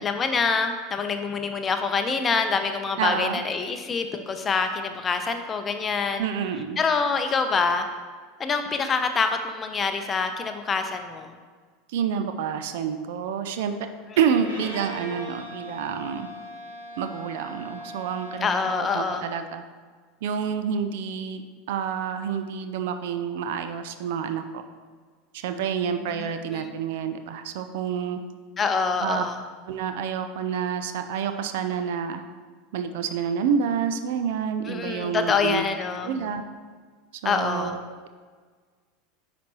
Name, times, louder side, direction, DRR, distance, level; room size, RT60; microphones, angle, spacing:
voice 1, 0.0-6.2 6.8-7.8 8.4-11.4 14.1-14.2 18.4-19.3 26.1-26.7 28.6-29.4 34.6-36.1 37.2-37.8, left 5 dB, 25° left, 7 dB, 0.6 m, -26 dB
voice 2, 3.0-3.4 6.2-6.8 11.9-13.7 14.2-16.3 17.0-19.6 20.2-24.6 25.3-28.2 29.0-29.2 29.7-32.2 32.7-35.6 36.0-36.4 37.2-37.8, right 7 dB, 60° right, 8 dB, 0.4 m, -28 dB
Bowed string instrument, 14.4-18.9, equal, 75° right, 1.7 m, -39 dB
10.0 x 4.1 x 3.1 m, 1.5 s
figure-of-eight pair, 80°, 0 cm